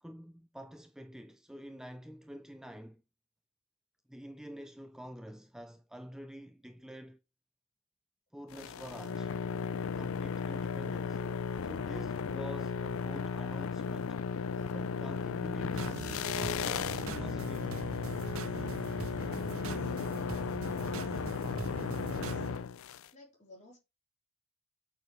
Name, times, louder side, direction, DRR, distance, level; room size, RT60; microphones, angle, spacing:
voice 1, 0.0-3.0 4.1-7.2 8.3-9.3 9.8-11.2 11.6-14.2 14.7-16.9 17.2-17.8, equal, 5° right, 0.4 m, -47 dB
sound 1, 8.5-23.1, left 6 dB, 65° left, 0.4 m, -35 dB
voice 2, 14.5-14.9 15.9-16.5 17.3-17.5 22.0-22.4 23.1-23.8, left 1 dB, 35° left, 3.8 m, -54 dB
sound 2, 15.7-22.6, right 4 dB, 70° right, 0.7 m, -42 dB
8.9 x 6.8 x 3.2 m
head